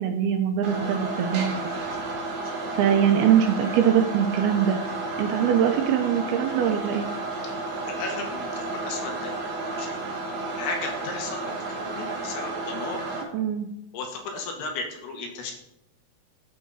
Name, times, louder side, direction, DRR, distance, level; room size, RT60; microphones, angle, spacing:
voice 1, 0.0-1.6 2.7-4.8 5.2-7.1 13.3-13.7, right 8 dB, 80° right, 5 dB, 2.5 m, -22 dB
sound 1, 0.6-13.2, right 2 dB, 55° right, 2.3 m, -32 dB
voice 2, 7.8-9.3 9.7-10.0 10.6-13.1 13.9-15.5, left 3 dB, 75° left, 3 dB, 3.2 m, -35 dB
13.0 x 5.1 x 4.0 m, 0.82 s
omnidirectional pair, 4.9 m